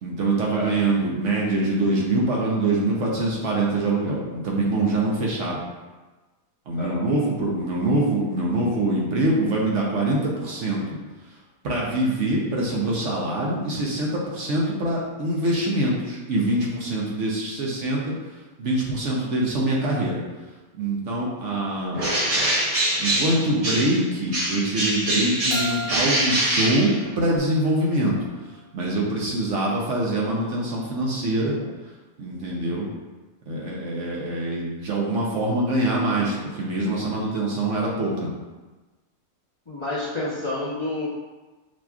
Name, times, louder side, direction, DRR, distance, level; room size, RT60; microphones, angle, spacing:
voice 1, 0.0-5.6 6.7-10.8 11.6-18.1 18.6-20.2 20.7-22.0 23.0-28.2 28.7-31.6 32.2-32.9 33.5-38.3, right 1 dB, 60° right, -3 dB, 1.0 m, -24 dB
voice 2, 0.5-0.9 6.8-7.1 39.7-41.1, left 2 dB, 35° left, -8 dB, 0.5 m, -29 dB
Bird, 21.9-24.0 24.3-27.4, right 1 dB, 45° right, 0.5 m, -24 dB
Keyboard (musical), 25.5-28.3, equal, 65° left, 0.8 m, -37 dB
6.3 x 3.0 x 2.3 m, 1.2 s
omnidirectional pair, 1.6 m